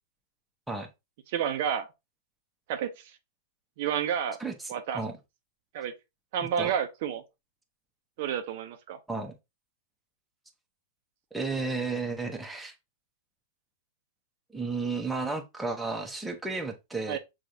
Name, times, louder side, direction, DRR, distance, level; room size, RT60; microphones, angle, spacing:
voice 1, 1.3-1.9 2.7-2.9 3.8-4.4 4.7-5.0 5.7-5.9 6.3-7.2 8.2-9.0 17.1-17.2, right 8 dB, 60° right, 0.6 m, -30 dB
voice 2, 4.4-5.2 6.6-6.7 9.1-9.3 11.3-12.7 14.5-17.2, right 3 dB, 5° right, 0.8 m, -33 dB
6.1 x 2.4 x 2.7 m
hypercardioid pair, 110°, 0 cm